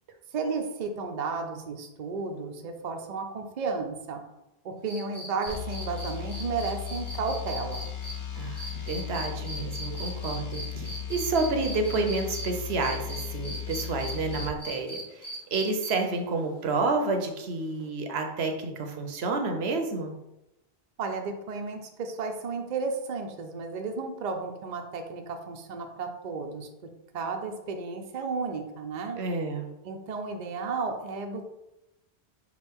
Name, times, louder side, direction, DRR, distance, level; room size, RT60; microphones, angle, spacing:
voice 1, 0.3-4.2 4.6-7.9 21.0-26.7 27.1-29.2 29.8-31.4, right 4 dB, 50° right, 4 dB, 0.6 m, -33 dB
sound 1, 4.9-12.5 12.8-16.2 17.8-17.9, right 1 dB, 30° left, 1.3 m, -39 dB
sound 2, 5.5-14.6, left 9 dB, 70° left, 1.0 m, -36 dB
voice 2, 8.4-20.1 29.2-29.7, right 3 dB, 75° right, 4 dB, 0.9 m, -30 dB
5.9 x 2.5 x 3.5 m, 0.91 s
omnidirectional pair, 1.1 m